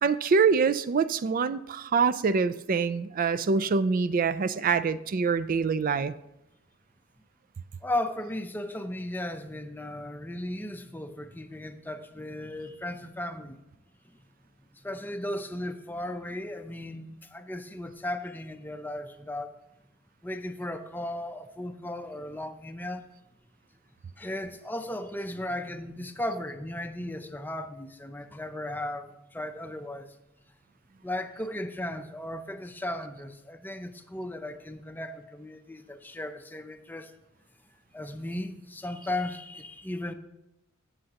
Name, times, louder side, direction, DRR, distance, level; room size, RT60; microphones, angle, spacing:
voice 1, 0.0-6.1, right 5 dB, 40° right, 0.4 m, -25 dB
voice 2, 7.8-13.6 14.7-19.5 20.2-23.1 24.2-30.1 31.0-37.1 37.9-40.1, left 1 dB, 10° left, 0.5 m, -36 dB
19.0 x 6.4 x 2.9 m
head